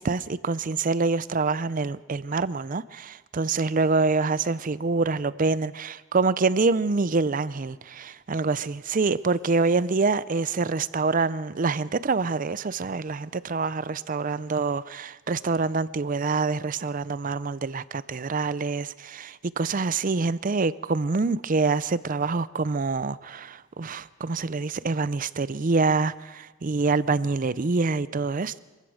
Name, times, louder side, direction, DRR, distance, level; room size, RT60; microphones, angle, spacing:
voice 1, 0.0-28.6, right 4 dB, 40° right, 17 dB, 0.5 m, -26 dB
25.0 x 16.0 x 6.5 m, 1.3 s
head